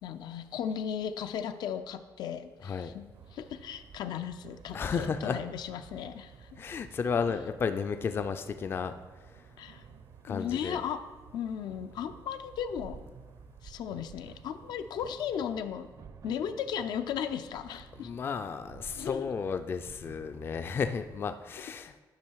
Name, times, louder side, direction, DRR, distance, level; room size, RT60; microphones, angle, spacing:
voice 1, 0.0-3.0 3.3-6.6 9.6-9.8 10.3-11.0 11.3-13.0 13.6-15.9 16.2-18.1 19.0-19.3, left 8 dB, 80° left, 9 dB, 0.5 m, -36 dB
voice 2, 2.6-2.9 4.7-5.4 6.6-8.9 9.2-9.5 10.2-10.8 17.7-22.0, left 6 dB, 30° left, 9 dB, 0.3 m, -33 dB
sound 1, 3.1-21.2, right 6 dB, 55° right, 0.5 m, -52 dB
10.5 x 5.5 x 4.6 m, 1.3 s
cardioid pair, 170°, 7 cm